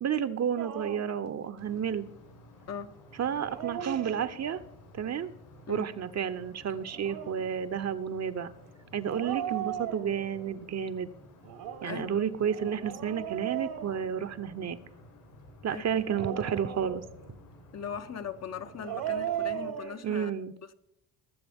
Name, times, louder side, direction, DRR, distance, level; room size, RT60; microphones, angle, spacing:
voice 1, 0.0-2.1 3.2-4.6 4.9-5.3 5.7-8.5 8.9-11.1 11.8-14.8 15.6-17.0 20.0-20.5, right 8 dB, 40° right, 0.8 m, -31 dB
Dog, 0.6-1.2 3.3-4.7 6.8-7.5 9.0-10.5 11.4-14.6 15.9-17.3 18.6-20.0, right 10 dB, 75° right, 1.6 m, -37 dB
sound 1, 1.6-19.7, left 1 dB, 80° left, 4.4 m, -54 dB
voice 2, 11.8-12.3 15.7-15.8 17.7-20.3, left 7 dB, 40° left, 0.8 m, -39 dB
20.5 x 7.5 x 3.6 m
supercardioid pair, 65°, 40 cm